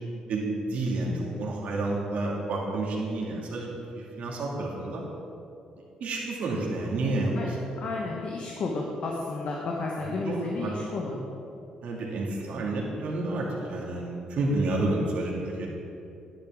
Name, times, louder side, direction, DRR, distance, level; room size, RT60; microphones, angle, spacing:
voice 1, 0.3-3.7 4.0-5.0 6.0-7.6 10.1-10.7 11.8-15.7, right 2 dB, 70° right, -3 dB, 2.3 m, -30 dB
voice 2, 7.4-11.2, left 3 dB, 65° left, -1 dB, 1.2 m, -32 dB
10.5 x 10.0 x 3.7 m, 2.7 s
cardioid pair, 80°, 2 cm